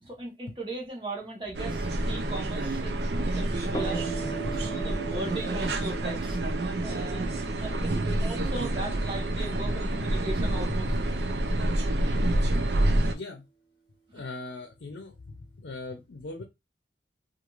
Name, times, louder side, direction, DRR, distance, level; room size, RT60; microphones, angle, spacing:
voice 1, 0.0-6.4 6.8-11.0 14.1-14.2, right 2 dB, 30° right, 1.1 m, -38 dB
sound 1, 1.5-13.1, right 1 dB, 75° right, 0.5 m, -28 dB
sound 2, 3.7-11.2, right 4 dB, 25° left, 0.8 m, -40 dB
voice 2, 13.1-13.4 14.1-16.4, left 3 dB, 85° left, 0.6 m, -40 dB
2.5 x 2.5 x 3.0 m
head